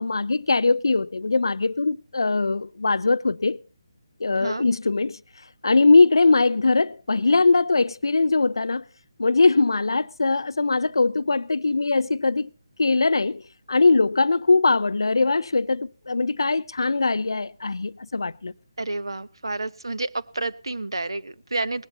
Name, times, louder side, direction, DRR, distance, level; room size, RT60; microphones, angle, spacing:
voice 1, 0.0-3.6 4.2-5.2 5.6-8.8 9.2-12.5 12.8-13.4 13.7-18.5, left 3 dB, 75° left, 0.7 m, -21 dB
voice 2, 18.8-21.9, right 2 dB, 85° right, 1.1 m, -30 dB
20.5 x 19.0 x 2.9 m
figure-of-eight pair, 155°, 2 cm